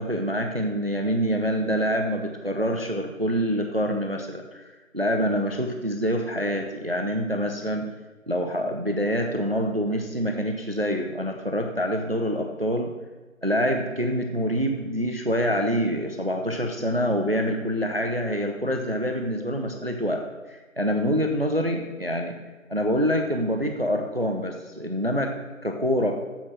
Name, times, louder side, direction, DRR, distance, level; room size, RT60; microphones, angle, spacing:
voice 1, 0.0-7.9 8.3-12.9 13.4-22.4 22.7-25.3 25.6-26.1, equal, 45° right, 4 dB, 0.7 m, -26 dB
7.5 x 7.1 x 6.4 m, 1.3 s
figure-of-eight pair, 180°, 41 cm